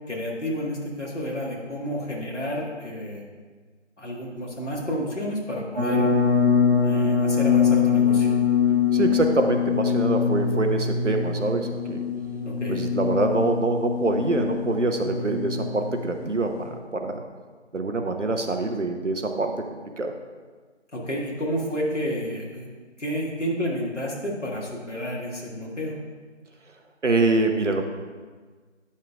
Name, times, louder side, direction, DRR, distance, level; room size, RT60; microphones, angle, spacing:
voice 1, 0.1-3.3 4.0-6.1 6.8-8.3 12.5-12.8 20.9-22.7 23.0-26.0, equal, 70° left, -3 dB, 1.7 m, -30 dB
sound 1, 5.8-16.7, left 6 dB, 30° right, 1.5 m, -23 dB
voice 2, 8.9-12.0 12.7-17.2 17.7-20.1 27.0-27.8, right 3 dB, 75° right, 5 dB, 0.9 m, -25 dB
9.3 x 5.7 x 2.4 m, 1.5 s
figure-of-eight pair, 175°, 37 cm